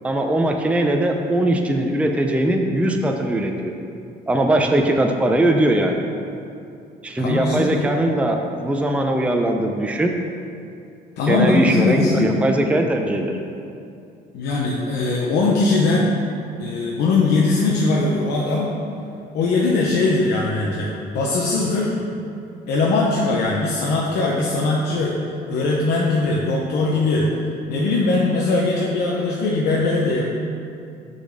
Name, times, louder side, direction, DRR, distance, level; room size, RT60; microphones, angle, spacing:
voice 1, 0.0-3.7 4.3-6.0 7.0-10.1 11.3-13.4, right 1 dB, 5° right, 3 dB, 0.5 m, -20 dB
voice 2, 7.2-7.8 11.2-12.4 14.3-16.1 16.6-18.7 19.3-22.0 22.7-25.2 25.5-27.3 27.7-30.2, left 3 dB, 80° left, -4 dB, 0.9 m, -20 dB
6.6 x 4.1 x 6.4 m, 2.6 s
cardioid pair, 110°, 17 cm